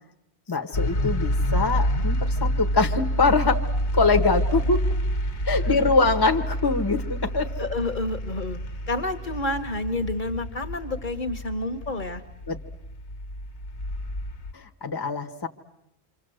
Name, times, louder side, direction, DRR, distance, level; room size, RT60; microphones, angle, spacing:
voice 1, 0.5-3.6 3.9-4.8 5.4-7.5 12.5-12.6 14.5-15.5, left 4 dB, 20° left, 5 dB, 1.2 m, -23 dB
sound 1, 0.7-14.5, equal, 80° left, 1.6 m, -28 dB
voice 2, 5.6-5.9 7.6-8.6 8.9-12.2, left 2 dB, 45° left, 8 dB, 1.5 m, -29 dB
27.0 x 26.5 x 7.9 m, 0.84 s
omnidirectional pair, 1.1 m